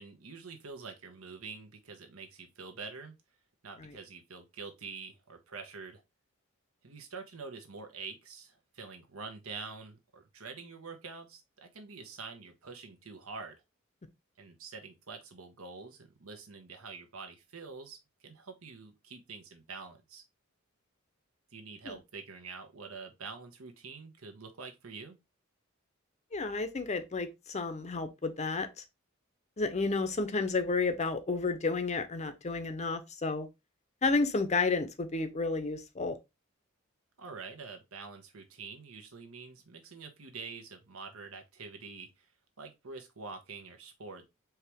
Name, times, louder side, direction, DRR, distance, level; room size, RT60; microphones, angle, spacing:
voice 1, 0.0-3.1 3.6-6.0 6.8-13.6 14.4-20.2 21.5-25.2 37.2-42.3 42.6-44.2, right 4 dB, 90° right, 1.1 m, -46 dB
voice 2, 26.3-28.8 29.6-33.5 34.0-36.2, left 3 dB, 30° left, 0.6 m, -31 dB
4.6 x 3.0 x 3.5 m
head